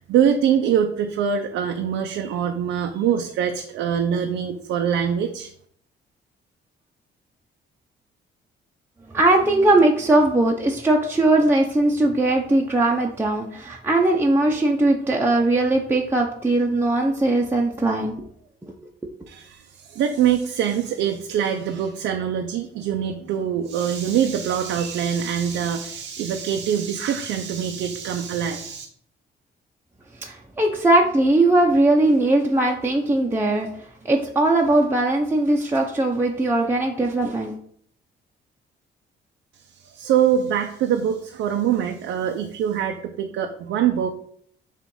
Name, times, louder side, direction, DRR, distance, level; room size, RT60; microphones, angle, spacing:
voice 1, 0.0-5.5 19.3-28.9 39.7-44.1, right 8 dB, 85° right, 4 dB, 0.6 m, -24 dB
voice 2, 9.1-18.2 30.2-37.6, right 2 dB, 10° right, -1 dB, 0.7 m, -20 dB
7.2 x 2.5 x 5.4 m, 0.63 s
cardioid pair, 90°, 20 cm